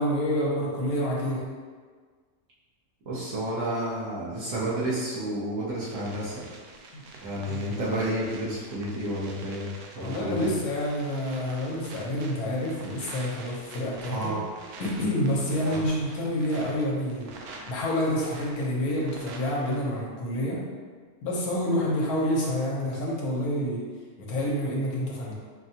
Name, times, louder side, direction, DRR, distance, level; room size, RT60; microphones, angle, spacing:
voice 1, 0.0-1.4 6.9-7.0 7.5-7.6 10.0-14.3 14.8-17.3 17.7-20.6 21.2-23.8 24.2-25.3, equal, 75° left, -4 dB, 1.3 m, -28 dB
voice 2, 3.0-6.5 7.2-10.5 14.1-14.4 15.6-15.8, right 1 dB, 60° right, -8 dB, 1.3 m, -31 dB
sound 1, 5.8-19.8, right 3 dB, 80° right, 1.1 m, -46 dB
5.3 x 2.3 x 2.7 m, 1.5 s
omnidirectional pair, 1.6 m